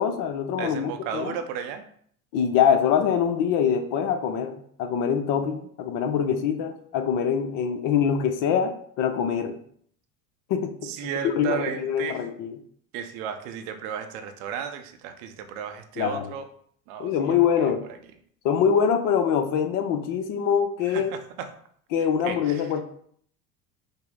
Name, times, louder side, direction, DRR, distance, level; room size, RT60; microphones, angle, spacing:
voice 1, 0.0-1.3 2.3-4.5 4.8-9.6 10.5-10.7 11.4-12.5 16.0-16.3 17.0-17.8 18.4-21.1 21.9-22.8, left 7 dB, 45° left, 8 dB, 0.6 m, -24 dB
voice 2, 0.6-1.8 10.8-12.2 12.9-16.5 16.9-18.0 20.8-21.5 22.2-22.7, right 8 dB, 60° right, 7 dB, 0.7 m, -34 dB
5.2 x 2.0 x 3.7 m, 0.62 s
hypercardioid pair, 75°, 45 cm